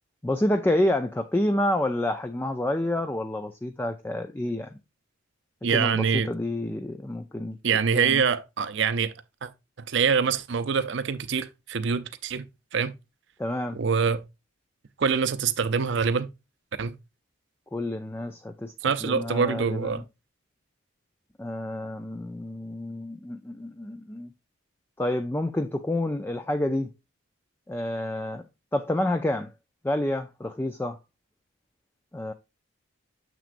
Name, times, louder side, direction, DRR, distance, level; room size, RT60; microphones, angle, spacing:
voice 1, 0.2-4.8 5.7-7.6 7.9-8.2 13.4-13.8 17.7-20.0 21.4-24.3 25.0-26.9 27.7-28.4 28.7-29.5 29.8-31.0 32.1-32.3, left 1 dB, 10° left, 0.3 m, -28 dB
voice 2, 5.6-6.3 7.6-9.1 9.4-9.5 9.8-12.4 12.7-12.9 13.7-14.2 15.0-16.3 16.8-16.9 18.8-20.0, right 6 dB, 55° right, 0.5 m, -25 dB
7.2 x 6.0 x 2.5 m
head